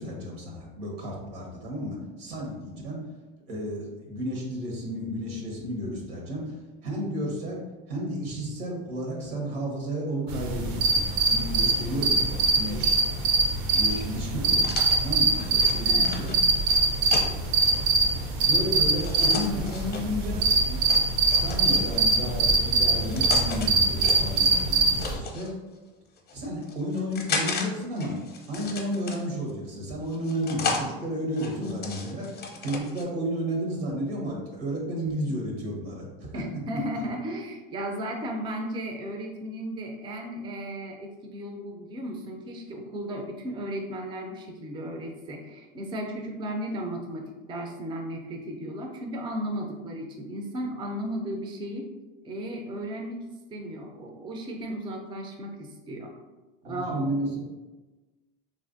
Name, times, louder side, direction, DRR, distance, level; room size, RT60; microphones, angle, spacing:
voice 1, 0.0-3.0 3.5-6.6 6.8-7.6 7.9-13.0 13.7-16.3 18.4-20.8 21.4-25.5 26.3-28.2 28.5-32.3 32.6-36.4 56.6-57.4, equal, 85° right, -1 dB, 1.1 m, -32 dB
sound 1, 10.3-25.2, right 3 dB, 65° right, 0.6 m, -23 dB
sound 2, 13.7-17.8 19.0-20.0 20.9-22.1 22.8-23.7 24.0-25.5 26.2-27.7 28.0-29.5 30.1-30.9 31.3-33.0, left 4 dB, 35° left, 0.6 m, -35 dB
voice 2, 36.3-51.9 52.2-53.2 53.5-56.1 56.6-57.1, right 1 dB, 15° right, 2 dB, 0.4 m, -35 dB
3.1 x 2.5 x 2.5 m, 1.2 s
supercardioid pair, 100°, 30 cm